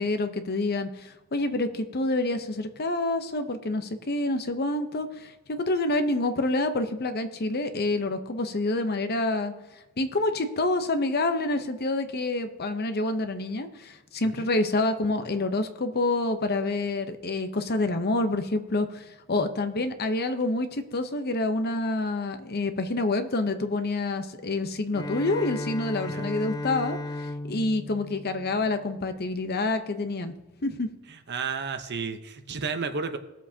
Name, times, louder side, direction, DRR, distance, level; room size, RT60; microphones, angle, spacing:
voice 1, 0.0-5.3 5.6-9.5 10.0-27.0 27.5-30.3 30.6-30.9, left 2 dB, 45° left, 8 dB, 0.8 m, -27 dB
Bowed string instrument, 24.9-29.2, left 2 dB, 20° left, 0.3 m, -36 dB
voice 2, 31.1-33.2, right 5 dB, 50° right, 8 dB, 0.9 m, -32 dB
19.5 x 7.3 x 2.8 m, 1.1 s
head